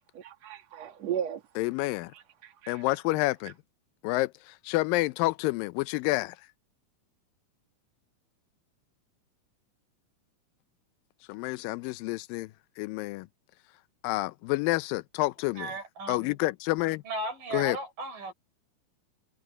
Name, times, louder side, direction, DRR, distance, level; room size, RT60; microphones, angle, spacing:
voice 1, 0.1-1.4 2.1-2.9, right 9 dB, 50° right, 3.2 m, -36 dB
voice 2, 1.6-2.1 2.7-3.5 4.0-6.4 11.3-12.5 12.8-13.3 14.0-15.7 16.1-17.0 17.5-17.8, left 20 dB, 85° left, 2.4 m, -29 dB
voice 3, 15.6-16.4 17.1-18.3, right 2 dB, 70° right, 7.2 m, -36 dB
omnidirectional pair, 4.0 m